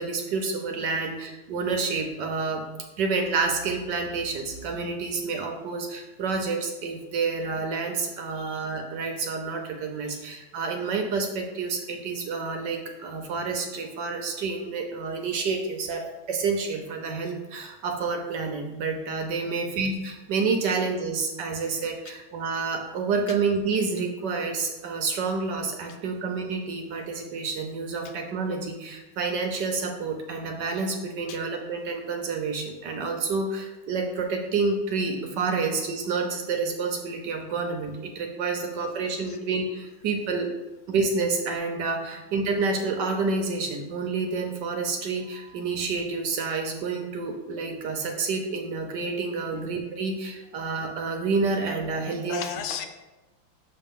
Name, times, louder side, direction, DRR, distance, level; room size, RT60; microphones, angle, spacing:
voice 1, 0.0-2.6 3.0-16.0 16.3-40.5 40.9-52.4, right 4 dB, 65° right, 3 dB, 1.2 m, -29 dB
voice 2, 52.3-52.9, left 8 dB, 85° left, 7 dB, 1.5 m, -34 dB
6.5 x 3.3 x 5.3 m, 1.1 s
omnidirectional pair, 2.3 m